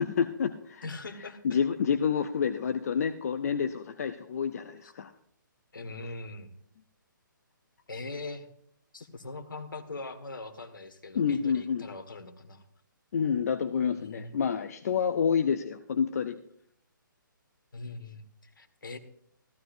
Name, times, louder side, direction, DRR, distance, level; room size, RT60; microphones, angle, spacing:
voice 1, 0.0-0.9 1.4-5.1 11.1-11.9 13.1-16.4, left 7 dB, 50° left, 9 dB, 0.7 m, -28 dB
voice 2, 0.8-1.6 4.8-4.9 5.7-6.5 7.9-8.5 8.9-12.6 13.9-14.4 17.7-19.0, left 3 dB, 70° left, 7 dB, 1.7 m, -41 dB
15.0 x 14.5 x 2.6 m, 0.67 s
figure-of-eight pair, 140°, 11 cm